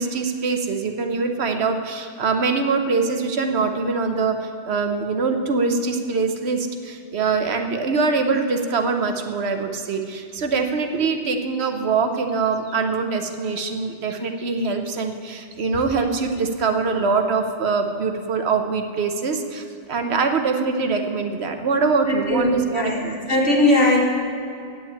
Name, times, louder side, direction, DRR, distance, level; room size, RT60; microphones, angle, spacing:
voice 1, 0.0-23.3, right 4 dB, 60° right, 6 dB, 1.1 m, -23 dB
voice 2, 22.1-22.5 22.8-23.0 23.3-24.0, left 1 dB, 80° left, -2 dB, 2.4 m, -18 dB
8.6 x 7.7 x 8.6 m, 2.5 s
omnidirectional pair, 1.2 m